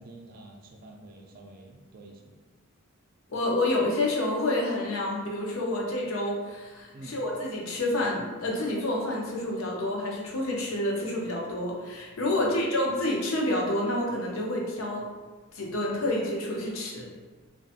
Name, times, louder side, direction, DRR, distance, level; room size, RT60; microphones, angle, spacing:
voice 1, 0.0-2.3 6.9-7.2 12.3-12.6, right 2 dB, 45° right, 1 dB, 0.3 m, -48 dB
voice 2, 3.3-15.0 15.5-17.1, left 1 dB, 80° left, -2 dB, 0.6 m, -28 dB
2.6 x 2.3 x 2.4 m, 1.4 s
head